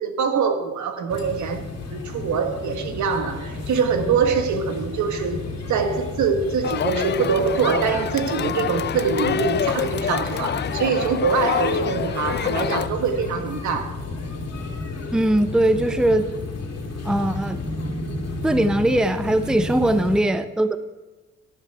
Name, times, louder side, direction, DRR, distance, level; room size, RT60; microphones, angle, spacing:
voice 1, 0.0-1.6 1.9-5.4 5.7-14.0, right 6 dB, 70° right, 1.6 m, -24 dB
sound 1, 1.1-20.2, left 2 dB, 55° left, 2.7 m, -32 dB
Crowd, 6.6-12.9, left 9 dB, 35° left, 0.4 m, -27 dB
voice 2, 15.1-16.3 17.0-17.7 18.4-20.8, right 1 dB, ahead, 0.7 m, -20 dB
11.5 x 11.0 x 4.6 m
cardioid pair, 90°, 30 cm